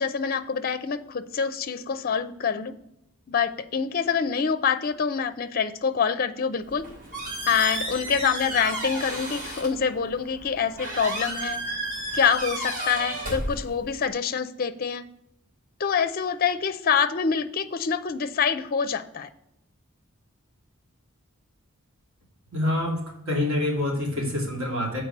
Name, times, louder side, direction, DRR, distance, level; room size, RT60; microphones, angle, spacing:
voice 1, 0.0-2.7 3.3-6.8 7.5-11.8 12.1-15.0 15.8-19.3, left 6 dB, 40° left, 11 dB, 0.5 m, -26 dB
Squeak, 6.6-14.1, right 1 dB, 40° right, 3.5 m, -33 dB
voice 2, 22.5-25.0, left 1 dB, 65° right, -1 dB, 2.5 m, -26 dB
7.5 x 4.6 x 6.5 m, 0.81 s
head